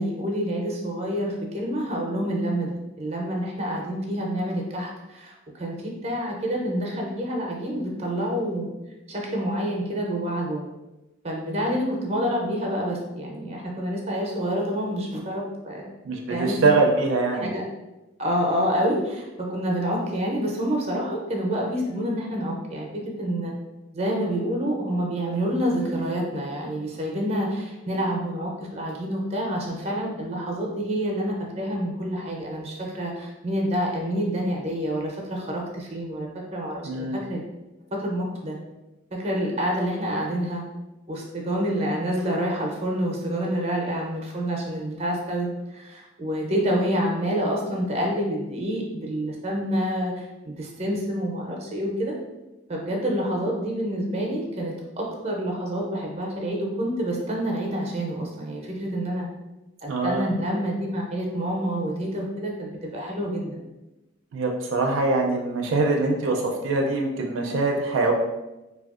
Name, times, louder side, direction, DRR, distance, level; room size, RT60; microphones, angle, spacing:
voice 1, 0.0-8.7 9.1-10.7 11.2-15.9 16.3-16.7 17.3-17.6 18.2-23.5 23.9-37.4 38.0-38.6 39.1-40.6 41.1-52.1 52.7-59.3 59.8-63.6, equal, 35° right, -1 dB, 0.6 m, -28 dB
voice 2, 16.1-17.5 36.8-37.2 59.9-60.3 64.3-68.1, right 3 dB, 80° right, 1 dB, 0.4 m, -23 dB
3.3 x 2.3 x 2.4 m, 1.0 s
head